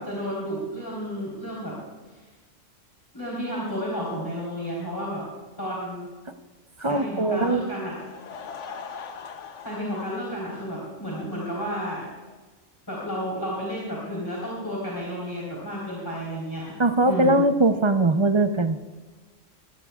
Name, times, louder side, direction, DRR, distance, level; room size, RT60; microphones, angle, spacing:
voice 1, 0.0-1.8 2.1-2.2 3.1-5.3 5.6-6.1 6.8-7.9 9.6-12.1 12.9-16.7 17.0-17.4, equal, 15° left, -7 dB, 3.9 m, -32 dB
voice 2, 6.8-7.7 16.8-18.8, right 2 dB, 30° right, 8 dB, 0.6 m, -21 dB
Laughter / Crowd, 7.8-12.4, left 6 dB, 65° left, 1.2 m, -42 dB
21.0 x 17.0 x 2.4 m, 1.3 s
omnidirectional pair, 1.3 m